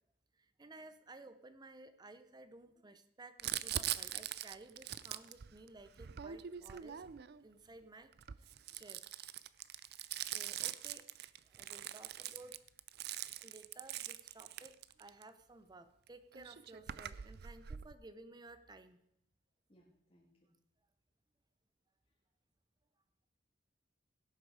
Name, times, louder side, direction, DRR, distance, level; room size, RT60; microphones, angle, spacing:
voice 1, 0.4-7.0 7.4-8.1 8.7-9.3 10.3-11.1 11.4-12.6 13.4-19.0, right 2 dB, 25° right, 11 dB, 0.7 m, -56 dB
Crumpling crinkling, 3.4-7.4 8.1-15.2 16.1-16.2 16.3-17.9, right 11 dB, 60° right, 0.5 m, -43 dB
voice 2, 19.7-20.5, equal, 30° left, -5 dB, 2.0 m, -70 dB
16.5 x 8.5 x 4.8 m, 0.74 s
head